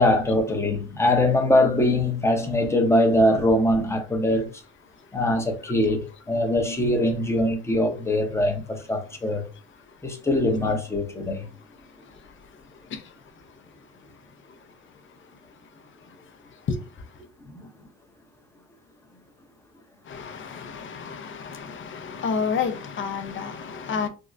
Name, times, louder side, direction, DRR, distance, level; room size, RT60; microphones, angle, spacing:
voice 1, 0.0-4.6 5.1-9.5 10.0-11.5 17.5-17.7, left 1 dB, 10° left, 0.8 m, -22 dB
voice 2, 4.9-5.2 5.6-5.7 9.5-10.3 11.6-17.2 20.0-24.1, left 5 dB, 40° left, 0.6 m, -34 dB
3.6 x 2.1 x 2.5 m
supercardioid pair, 75°, 32 cm